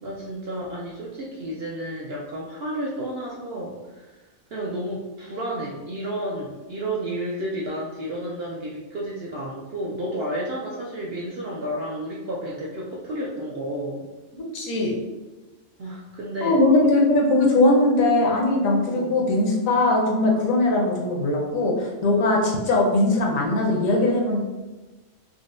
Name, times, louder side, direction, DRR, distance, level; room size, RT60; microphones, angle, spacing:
voice 1, 0.0-4.2 4.5-14.1 15.8-16.6 18.9-19.3, right 1 dB, 65° right, -4 dB, 0.6 m, -31 dB
voice 2, 14.3-14.9 16.4-24.4, left 2 dB, 75° left, 0 dB, 1.1 m, -20 dB
3.9 x 2.1 x 2.5 m, 1.2 s
omnidirectional pair, 1.4 m